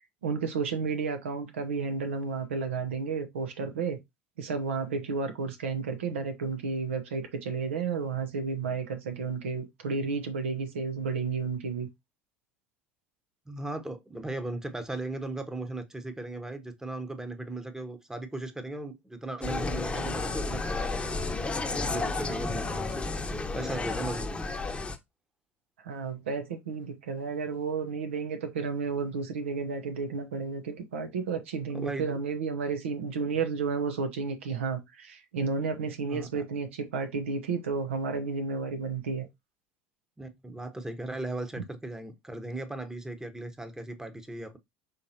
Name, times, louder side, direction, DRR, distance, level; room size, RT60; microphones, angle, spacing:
voice 1, 0.2-4.0 4.4-11.9 25.8-39.3, right 5 dB, 85° right, 0.9 m, -32 dB
voice 2, 13.5-21.4 21.9-23.1 23.5-24.3 31.7-32.2 36.1-36.4 40.2-44.6, right 2 dB, 10° right, 1.0 m, -37 dB
Insect, 19.4-25.0, left 3 dB, 15° left, 0.9 m, -32 dB
5.5 x 3.4 x 2.8 m
hypercardioid pair, 75°, 7 cm